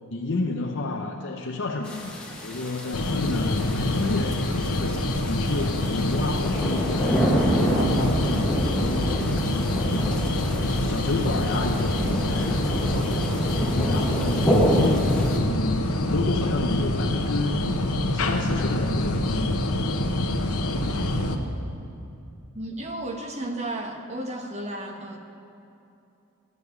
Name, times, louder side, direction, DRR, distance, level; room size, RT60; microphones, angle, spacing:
voice 1, 0.1-2.2 2.4-7.2 7.5-10.3 10.8-13.2 13.7-17.6 18.1-19.8 20.7-21.0, left 3 dB, 55° left, 1 dB, 0.6 m, -31 dB
sound 1, 1.8-15.4, equal, 5° left, 1.2 m, -28 dB
sound 2, 2.9-21.4, left 1 dB, 90° left, 1.0 m, -26 dB
voice 2, 22.5-25.2, right 1 dB, 30° right, 3 dB, 1.1 m, -33 dB
13.5 x 6.5 x 9.7 m, 2.7 s
head